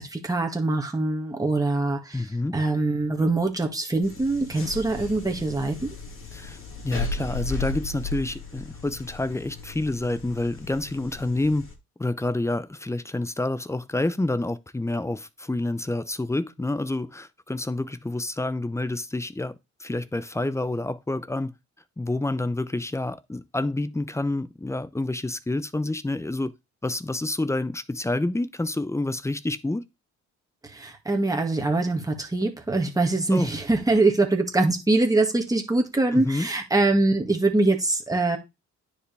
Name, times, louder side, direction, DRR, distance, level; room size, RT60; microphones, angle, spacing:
voice 1, 0.0-2.2 2.5-5.9 30.6-38.4, right 2 dB, 10° right, 2.0 m, -23 dB
voice 2, 2.1-2.6 6.3-6.6 6.8-11.7 12.0-19.5 19.8-21.5 22.0-26.5 26.8-29.8 33.3-33.5 36.1-36.5, left 2 dB, 10° left, 0.7 m, -28 dB
sound 1, 4.0-11.7, left 3 dB, 45° left, 2.7 m, -36 dB
9.8 x 5.0 x 3.5 m
cardioid pair, 90°, 30 cm